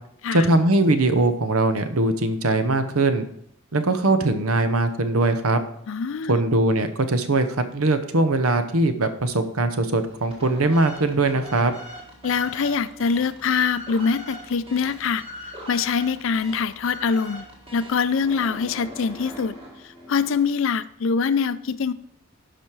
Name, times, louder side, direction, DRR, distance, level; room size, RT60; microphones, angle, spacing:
voice 1, 0.3-3.3 3.7-5.6 6.3-11.7, right 2 dB, 80° right, 9 dB, 0.9 m, -21 dB
voice 2, 5.9-6.4 12.2-15.2 15.7-17.5 17.7-19.6 19.8-21.9, left 5 dB, 60° left, 15 dB, 0.4 m, -24 dB
sound 1, 10.1-20.6, equal, 25° right, 1.7 m, -41 dB
11.5 x 5.1 x 4.6 m, 0.69 s
head